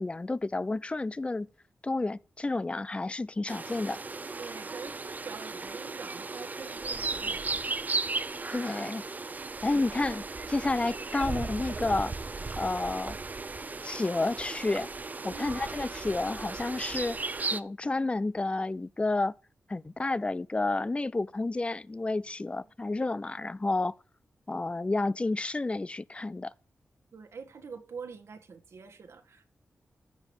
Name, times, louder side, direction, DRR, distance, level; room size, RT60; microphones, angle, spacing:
voice 1, 0.0-1.5 1.8-4.0 8.5-9.0 9.6-12.1 12.6-13.2 13.8-14.9 15.2-17.2 17.5-19.3 19.7-23.9 24.5-26.5, left 2 dB, 25° left, 0.5 m, -30 dB
sound 1, 3.5-17.6, right 3 dB, 35° right, 0.8 m, -36 dB
voice 2, 4.4-7.5 9.7-9.8 15.3-15.6 27.1-29.5, right 5 dB, 80° right, 1.7 m, -45 dB
14.5 x 5.1 x 7.1 m
wide cardioid pair, 90°, 5 cm